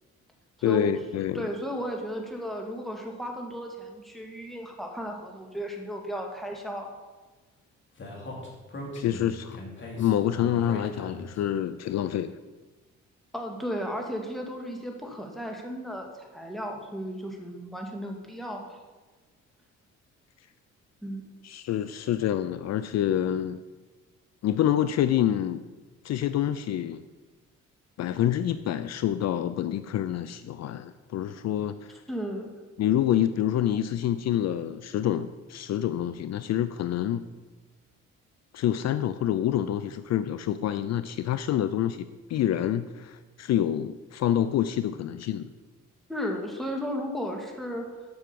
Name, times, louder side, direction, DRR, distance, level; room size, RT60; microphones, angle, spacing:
voice 1, 0.6-1.5 9.0-9.6 10.0-12.4 21.4-23.6 24.4-25.6 26.0-27.0 28.0-32.0 32.8-37.2 38.5-45.5, left 11 dB, 60° left, 12 dB, 0.5 m, -27 dB
voice 2, 1.3-6.9 13.3-18.8 21.0-21.2 32.1-32.5 46.1-47.9, equal, ahead, 1 dB, 1.9 m, -34 dB
Speech, 8.0-11.4, left 1 dB, 40° left, 2.6 m, -39 dB
7.7 x 6.2 x 6.9 m, 1.3 s
cardioid pair, 90°, 30 cm